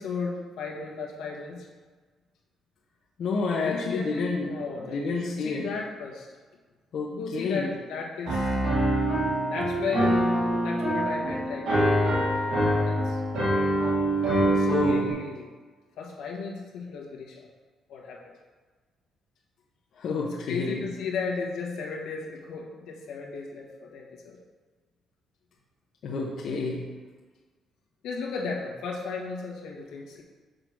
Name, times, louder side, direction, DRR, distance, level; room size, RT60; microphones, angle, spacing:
voice 1, 0.0-1.7 3.6-6.3 7.1-8.6 9.5-13.2 14.3-15.5 16.0-17.5 17.9-18.2 20.2-24.4 28.0-30.2, left 4 dB, 85° left, -2 dB, 1.5 m, -35 dB
voice 2, 3.2-4.5 4.8-5.7 6.9-7.7 14.6-15.2 20.0-20.9 26.0-26.9, left 3 dB, 65° left, -4 dB, 1.0 m, -29 dB
Piano, 8.3-15.1, right 1 dB, 80° right, 2.3 m, -25 dB
6.5 x 3.9 x 6.2 m, 1.4 s
cardioid pair, 90°, 0 cm